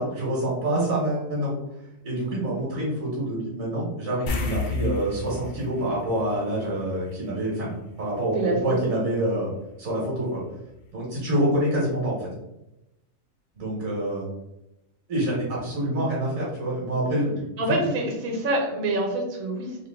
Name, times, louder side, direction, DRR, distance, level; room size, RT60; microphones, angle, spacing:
voice 1, 0.0-1.5 2.0-9.5 9.8-10.4 10.9-12.3 13.6-14.3 15.1-17.4 17.7-17.8, right 1 dB, 90° right, -7 dB, 1.7 m, -26 dB
sound 1, 4.3-7.1 7.4-7.5 10.4-10.5 10.9-11.0, left 4 dB, 60° left, 0.5 m, -31 dB
voice 2, 8.3-8.9 17.6-19.8, right 1 dB, 50° right, 0 dB, 0.8 m, -26 dB
3.7 x 2.6 x 3.5 m, 0.90 s
omnidirectional pair, 1.4 m